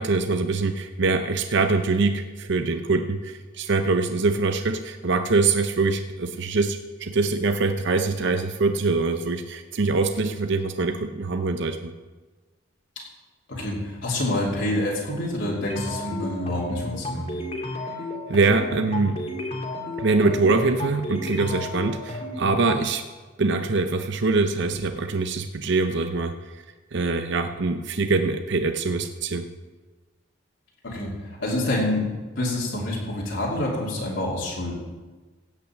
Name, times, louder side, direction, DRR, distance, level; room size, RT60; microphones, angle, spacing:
voice 1, 0.0-11.9 17.8-17.9 18.3-19.2 20.0-23.1 23.4-26.6 26.9-29.5, right 3 dB, 60° right, 7 dB, 0.6 m, -24 dB
voice 2, 13.5-17.3 30.8-31.1 31.4-32.1 32.3-34.7, left 1 dB, 65° left, -5 dB, 2.9 m, -27 dB
sound 1, 15.7-22.8, left 1 dB, 30° left, 2.0 m, -33 dB
16.5 x 5.9 x 7.5 m, 1.3 s
head